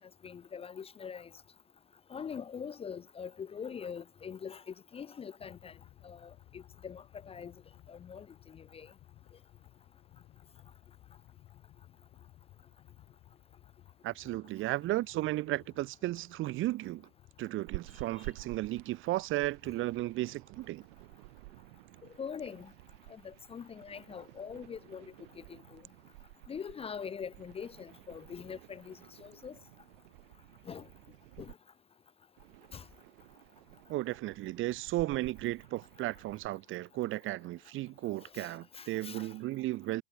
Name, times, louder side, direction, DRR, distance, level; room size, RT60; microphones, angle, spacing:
voice 1, 0.2-1.3 2.1-5.8 6.0-7.5 7.9-8.9 22.2-22.7 23.1-25.1 25.4-25.8 26.5-29.6 30.7-30.9 31.4-31.5 32.7-32.8 38.2-39.3, left 7 dB, 20° left, 0.7 m, -43 dB
sound 1, 5.4-19.4, left 14 dB, 45° left, 5.2 m, -59 dB
voice 2, 14.0-17.1 17.4-20.8 33.9-40.0, right 17 dB, 40° right, 1.1 m, -34 dB
sound 2, 17.7-31.5 32.4-36.5, right 26 dB, 70° right, 1.5 m, -52 dB
supercardioid pair, 125°, 30 cm